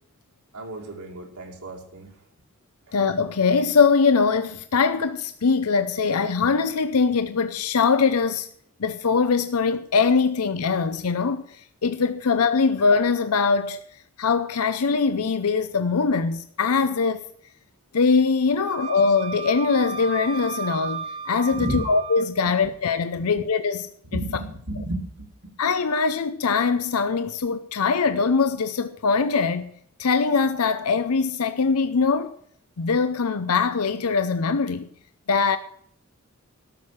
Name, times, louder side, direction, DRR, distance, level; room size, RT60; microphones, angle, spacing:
voice 1, 0.5-2.1 18.5-18.6 21.5-21.8 23.2-23.3 24.1-25.3, right 1 dB, 80° right, 2.6 m, -32 dB
voice 2, 2.9-8.5 8.8-11.4 11.8-13.8 14.2-17.2 17.9-24.2 25.6-29.7 30.0-32.3 32.8-34.9 35.3-35.6, left 5 dB, 85° left, 0.6 m, -22 dB
Wind instrument woodwind instrument, 18.7-22.3, right 5 dB, 25° right, 0.7 m, -34 dB
13.0 x 6.4 x 8.2 m
head